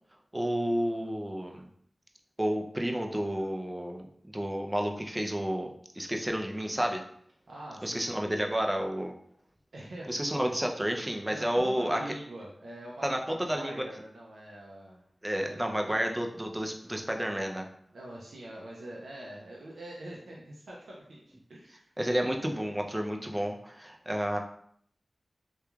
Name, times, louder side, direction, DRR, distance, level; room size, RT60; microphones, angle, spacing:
voice 1, 0.3-1.7 2.4-4.1 4.3-7.0 7.8-9.1 10.1-12.0 13.0-13.7 15.2-17.7 22.0-24.4, equal, 15° right, 2 dB, 0.4 m, -31 dB
voice 2, 7.5-8.4 9.7-10.5 11.3-15.0 15.4-15.9 17.9-21.2 21.5-21.9, right 1 dB, 85° right, -3 dB, 0.4 m, -44 dB
2.9 x 2.2 x 2.3 m, 0.65 s
cardioid pair, 40°, 0 cm